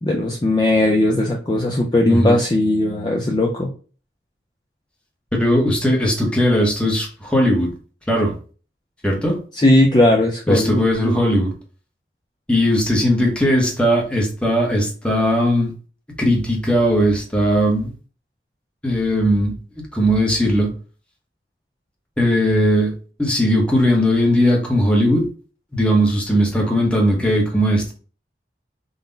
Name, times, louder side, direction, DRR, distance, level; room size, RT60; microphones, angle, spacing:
voice 1, 0.0-3.7 9.5-11.2, left 1 dB, 25° left, -1 dB, 0.4 m, -18 dB
voice 2, 5.4-7.7 8.1-8.3 9.0-9.4 10.5-11.5 12.5-15.7 16.2-17.9 18.8-19.5 19.9-20.7 22.2-22.9 23.2-25.3 25.7-27.9, equal, 5° left, 0 dB, 0.8 m, -18 dB
3.9 x 2.1 x 3.8 m, 0.39 s
head